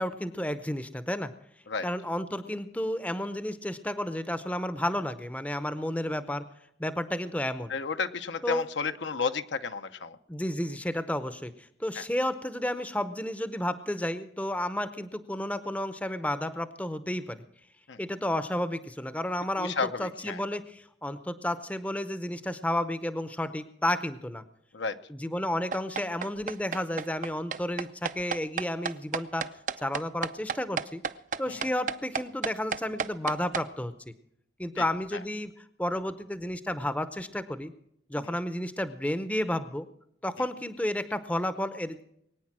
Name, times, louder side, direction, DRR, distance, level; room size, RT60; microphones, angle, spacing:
voice 1, 0.0-1.3 1.8-6.4 6.8-7.7 8.4-8.7 10.3-17.4 18.0-24.4 25.1-29.5 29.8-31.0 31.4-33.9 34.6-37.7 38.1-39.9 40.2-42.0, left 1 dB, 10° left, 12 dB, 0.7 m, -32 dB
voice 2, 7.7-10.2 12.0-12.1 17.9-18.0 19.6-20.4 24.7-25.0 31.5-31.6 34.8-34.9, left 5 dB, 75° left, 9 dB, 0.8 m, -32 dB
sound 1, 25.7-33.6, right 6 dB, 40° right, 0.5 m, -32 dB
21.5 x 9.4 x 6.1 m, 0.75 s
head